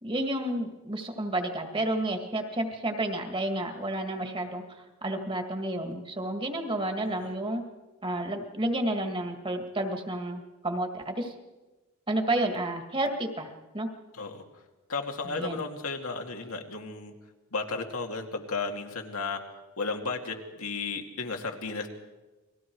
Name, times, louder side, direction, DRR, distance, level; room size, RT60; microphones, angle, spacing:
voice 1, 0.0-7.6 8.0-11.3 12.1-13.5 13.7-13.9 15.2-15.6, right 1 dB, 25° right, 5 dB, 2.1 m, -31 dB
voice 2, 14.9-17.1 17.5-19.4 19.8-21.9, left 4 dB, 80° left, 3 dB, 2.2 m, -34 dB
29.5 x 20.5 x 4.7 m, 1.1 s
head